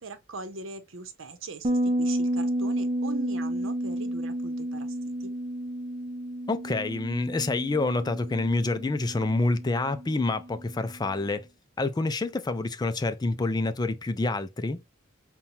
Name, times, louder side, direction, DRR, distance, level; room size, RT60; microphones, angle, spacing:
voice 1, 0.0-5.3, right 3 dB, 75° right, 0.8 m, -41 dB
Bass guitar, 1.6-11.0, right 1 dB, 30° right, 0.5 m, -31 dB
voice 2, 6.5-11.5 11.8-14.8, left 2 dB, 20° left, 0.3 m, -27 dB
5.5 x 2.2 x 2.7 m
head